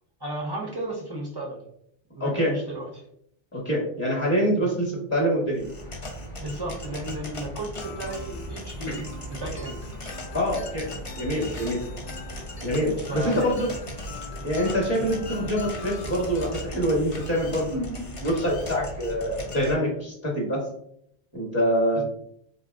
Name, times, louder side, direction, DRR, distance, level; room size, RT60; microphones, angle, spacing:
voice 1, 0.2-1.6 2.1-3.0 4.6-4.7 6.4-9.0 9.3-9.8 13.0-13.5 15.0-15.1 22.0-22.1, right 2 dB, 35° right, -1 dB, 0.4 m, -34 dB
voice 2, 2.2-2.5 3.5-5.7 9.0-9.1 10.3-10.9 11.2-11.8 12.6-13.7 14.4-20.6 21.3-22.0, equal, 15° left, -3 dB, 0.9 m, -25 dB
sound 1, 5.6-19.7, left 1 dB, 40° left, 0.5 m, -38 dB
sound 2, 7.8-17.4, left 2 dB, 70° left, 0.9 m, -43 dB
3.9 x 2.7 x 2.4 m, 0.72 s
omnidirectional pair, 1.2 m